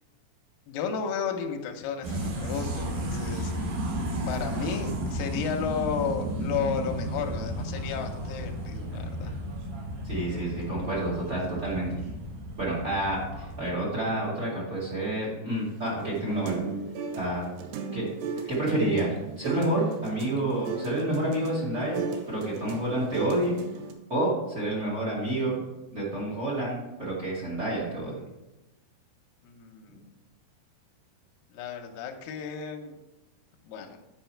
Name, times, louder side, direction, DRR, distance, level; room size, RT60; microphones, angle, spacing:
voice 1, 0.7-3.5 4.3-9.3 18.4-18.5 29.4-30.2 31.5-33.0 33.6-34.0, left 6 dB, 75° left, 4 dB, 2.1 m, -33 dB
sound 1, 2.0-13.7, right 1 dB, 65° right, 2.1 m, -33 dB
voice 2, 10.0-12.0 12.6-16.6 17.1-17.4 17.9-18.1 18.5-23.6 24.1-25.6 25.9-28.2, right 1 dB, 25° right, -4 dB, 1.5 m, -29 dB
sound 2, 15.7-23.9, right 5 dB, 85° right, 2.9 m, -36 dB
9.9 x 5.2 x 4.5 m, 0.98 s
omnidirectional pair, 4.8 m